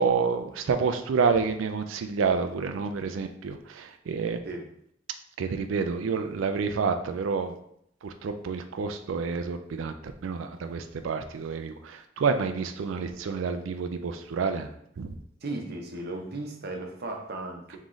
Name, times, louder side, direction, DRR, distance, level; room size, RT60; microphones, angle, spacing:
voice 1, 0.0-4.4 5.4-7.6 8.0-14.7 15.0-15.2, right 5 dB, 80° right, 7 dB, 0.4 m, -28 dB
voice 2, 15.4-17.8, right 2 dB, 55° right, 2 dB, 0.8 m, -36 dB
3.6 x 3.1 x 3.9 m, 0.72 s
head